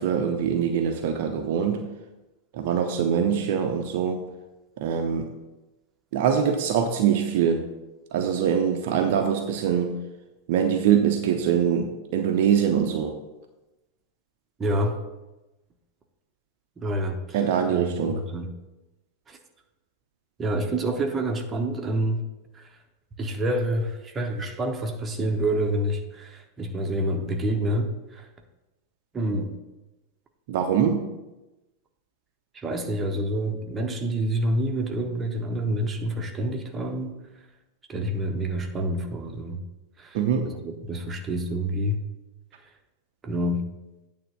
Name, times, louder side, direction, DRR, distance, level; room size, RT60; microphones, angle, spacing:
voice 1, 0.0-1.9 2.5-4.2 4.8-5.3 6.1-7.7 8.1-9.9 10.5-13.1 17.3-18.2 30.5-31.1 40.1-40.5, right 8 dB, 50° right, 5 dB, 0.7 m, -23 dB
voice 2, 14.6-15.0 16.8-17.4 17.7-18.5 19.3-19.4 20.4-22.2 22.5-22.7 23.2-28.3 29.1-29.5 32.5-37.2 37.9-39.6 40.0-40.2 40.4-42.0 43.2-43.7, right 1 dB, 20° right, 3 dB, 1.0 m, -27 dB
9.0 x 3.6 x 6.4 m, 1.0 s
figure-of-eight pair, 90°, 0 cm